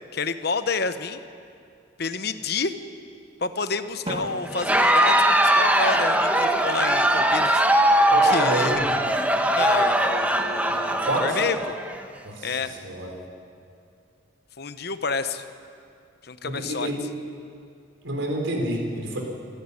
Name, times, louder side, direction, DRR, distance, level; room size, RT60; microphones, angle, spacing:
voice 1, 0.1-1.2 2.0-2.7 3.4-7.7 8.2-8.7 9.5-11.8 12.4-12.7 14.6-15.4 16.2-16.9, left 4 dB, 55° left, 10 dB, 1.0 m, -29 dB
Drum, 4.1-6.0, right 1 dB, 30° right, 1.9 m, -38 dB
Crowd, 4.5-12.0, right 1 dB, 10° right, 1.1 m, -21 dB
voice 2, 8.1-8.9 11.0-11.4 12.2-12.6 12.8-13.1 16.4-17.0 18.0-19.2, right 1 dB, 85° right, 2 dB, 4.3 m, -28 dB
25.5 x 13.5 x 10.0 m, 2.5 s
head